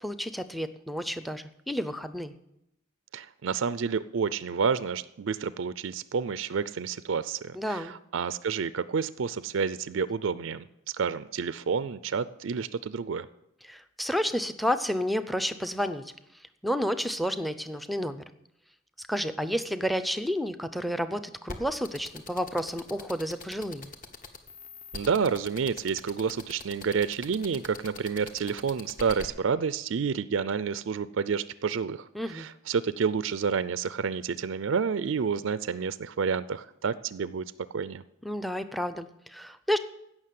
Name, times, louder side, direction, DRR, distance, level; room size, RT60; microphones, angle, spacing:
voice 1, 0.0-2.4 7.5-8.0 13.6-16.1 16.6-18.2 19.1-23.9 32.1-32.5 38.2-39.8, equal, ahead, 11 dB, 0.6 m, -31 dB
voice 2, 3.1-10.6 10.9-13.3 24.9-37.4 37.7-38.0, right 6 dB, 75° right, 16 dB, 0.4 m, -29 dB
sound 1, 21.5-29.3, left 3 dB, 45° left, 1.3 m, -41 dB
16.0 x 6.1 x 7.6 m, 0.82 s
head